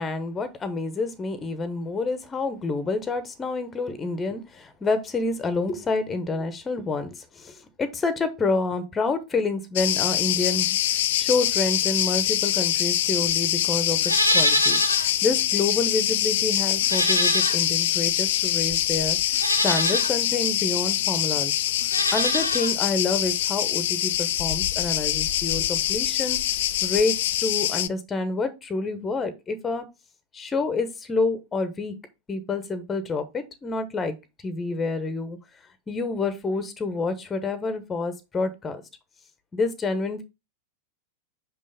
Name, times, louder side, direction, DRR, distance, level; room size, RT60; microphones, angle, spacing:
voice 1, 0.0-14.0 14.3-21.5 22.1-26.4 26.8-29.9 30.3-32.0 32.3-34.1 34.4-35.4 35.9-38.8 39.5-40.2, left 3 dB, 20° left, 1.0 m, -28 dB
Cricket, 9.8-27.9, left 13 dB, 55° left, 0.4 m, -24 dB
Livestock farm animals working animals, 14.0-15.1 15.5-15.6 16.8-17.9 18.7-18.8 19.3-20.1 21.8-22.7 23.0-23.1, equal, 90° left, 0.8 m, -24 dB
6.2 x 5.4 x 3.4 m
figure-of-eight pair, 90°, 0 cm